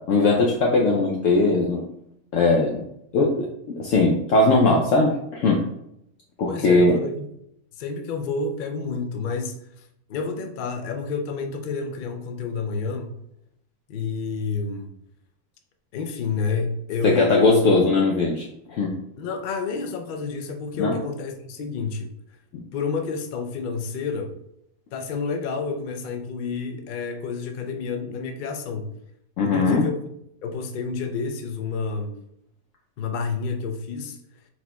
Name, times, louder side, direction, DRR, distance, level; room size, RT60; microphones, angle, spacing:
voice 1, 0.1-1.8 2.3-2.8 3.1-3.5 3.8-5.6 6.4-6.9 17.0-19.0 20.8-21.0 29.4-29.9, left 3 dB, 70° left, -1 dB, 0.9 m, -19 dB
voice 2, 6.5-7.3 7.8-13.1 13.9-14.9 15.9-17.6 19.2-22.1 22.7-24.3 24.9-28.9 29.4-30.0 30.4-32.2 33.0-34.2, left 4 dB, 85° left, 5 dB, 0.4 m, -29 dB
4.4 x 4.1 x 2.2 m, 0.78 s
omnidirectional pair, 1.5 m